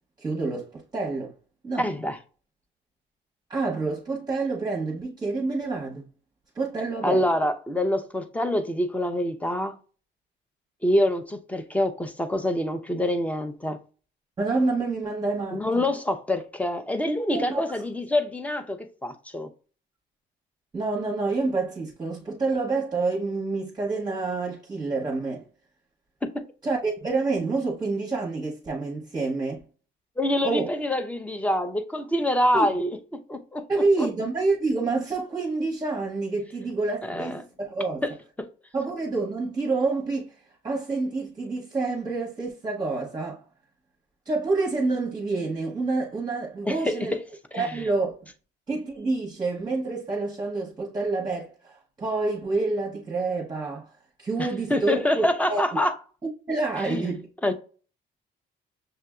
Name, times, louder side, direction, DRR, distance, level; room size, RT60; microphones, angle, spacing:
voice 1, 0.2-1.3 1.6-1.9 3.5-6.1 6.5-7.2 14.4-15.8 17.3-17.8 20.7-25.5 26.6-29.6 30.4-30.7 32.5-32.7 33.7-38.0 38.7-40.3 40.6-43.4 44.3-47.1 47.6-48.2 48.7-53.9 54.2-55.8 56.2-57.3, right 3 dB, 20° right, 0.9 m, -28 dB
voice 2, 1.8-2.2 7.0-9.8 10.8-13.8 15.5-19.5 26.2-26.5 30.2-34.1 37.0-37.4 38.0-38.1 38.4-38.5 46.7-47.2 47.5-47.8 54.4-56.0 56.8-57.5, left 1 dB, 5° left, 0.6 m, -26 dB
6.6 x 2.6 x 2.3 m
cardioid pair, 125°, 19 cm